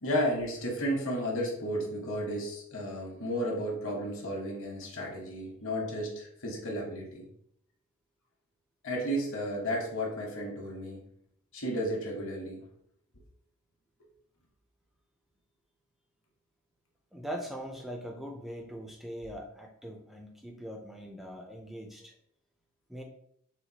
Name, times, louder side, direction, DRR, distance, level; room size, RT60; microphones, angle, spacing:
voice 1, 0.0-7.3 8.8-11.0 11.5-12.6, equal, 60° left, -1 dB, 1.0 m, -33 dB
voice 2, 17.1-22.1 22.9-23.0, equal, ahead, 1 dB, 0.3 m, -41 dB
4.2 x 2.2 x 2.8 m, 0.69 s
head